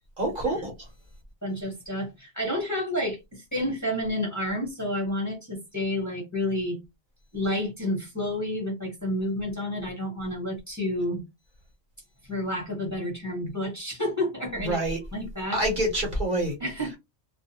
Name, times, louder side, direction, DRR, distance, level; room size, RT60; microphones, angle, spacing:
voice 1, 0.2-0.7 14.6-15.0 15.5-16.5, right 1 dB, 50° right, 0.9 m, -26 dB
voice 2, 1.4-6.8 7.3-11.2 12.2-14.8 15.1-15.6 16.6-17.0, left 1 dB, 15° left, 0.9 m, -30 dB
2.3 x 2.3 x 2.8 m
omnidirectional pair, 1.2 m